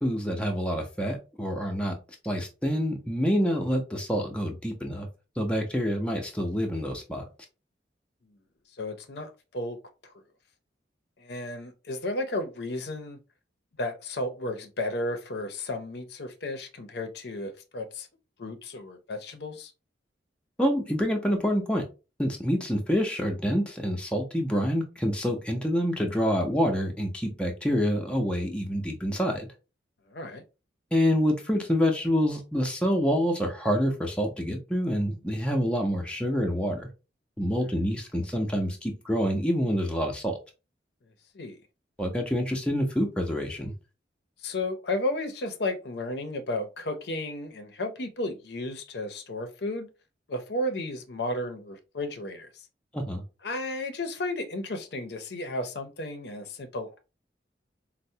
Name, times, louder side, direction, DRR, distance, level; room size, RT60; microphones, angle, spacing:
voice 1, 0.0-1.9 2.2-5.1 5.4-7.2 20.6-21.8 22.2-29.5 30.9-36.9 37.4-40.4 42.0-43.7 52.9-53.2, equal, 5° left, 0.5 m, -27 dB
voice 2, 8.8-10.1 11.2-13.2 13.8-18.1 18.4-19.7 30.1-30.4 41.3-41.6 44.4-49.9 50.3-52.5 53.4-57.0, left 1 dB, 60° left, 0.5 m, -33 dB
4.4 x 2.0 x 2.7 m
head